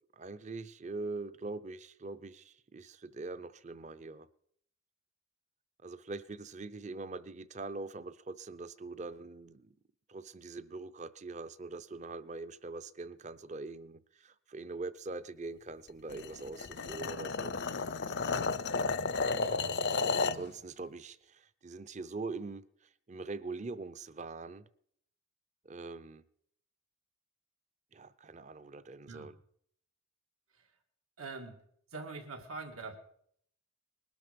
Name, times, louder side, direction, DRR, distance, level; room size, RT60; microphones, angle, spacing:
voice 1, 0.0-4.3 5.8-9.7 10.1-17.5 19.2-19.6 20.2-22.6 23.1-24.6 25.6-26.2 27.9-29.4, right 3 dB, 35° right, 0.6 m, -43 dB
sound 1, 16.1-20.5, left 4 dB, 50° left, 0.5 m, -33 dB
voice 2, 19.4-19.7 29.1-29.3 30.5-30.7 31.2-31.6 31.9-33.0, right 3 dB, 90° right, 2.2 m, -44 dB
20.5 x 12.5 x 5.2 m
head